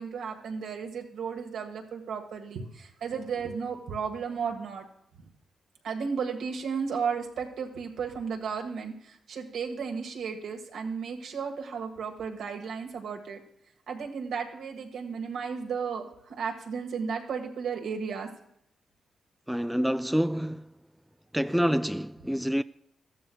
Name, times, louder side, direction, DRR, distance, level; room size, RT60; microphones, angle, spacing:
voice 1, 0.0-4.8 5.2-5.3 5.8-13.4 13.9-18.3, right 6 dB, 75° right, 1.6 m, -34 dB
voice 2, 19.5-20.7 21.3-22.6, equal, ahead, 0.3 m, -27 dB
14.0 x 12.5 x 2.3 m
supercardioid pair, 50°, 0 cm